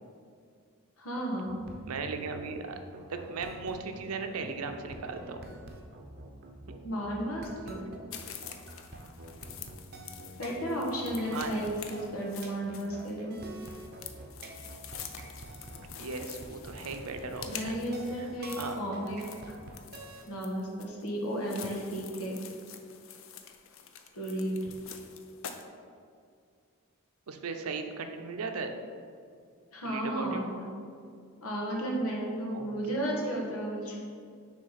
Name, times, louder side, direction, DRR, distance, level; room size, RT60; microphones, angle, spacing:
voice 1, 1.0-1.5 6.8-7.9 10.4-13.3 17.5-19.2 20.3-22.4 24.1-24.6 29.7-30.7 31.4-34.0, right 1 dB, 85° left, -2 dB, 1.3 m, -33 dB
sound 1, 1.5-20.2, right 1 dB, 45° right, 0.7 m, -47 dB
voice 2, 1.9-2.8 3.1-5.5 11.2-11.7 16.0-17.8 18.2-18.3 18.6-18.8 27.3-28.7 29.8-30.4 32.5-33.0, right 4 dB, 85° right, 6 dB, 0.6 m, -37 dB
sound 2, 8.1-25.7, left 8 dB, 65° left, 0.5 m, -47 dB
6.5 x 3.4 x 5.6 m, 2.2 s
head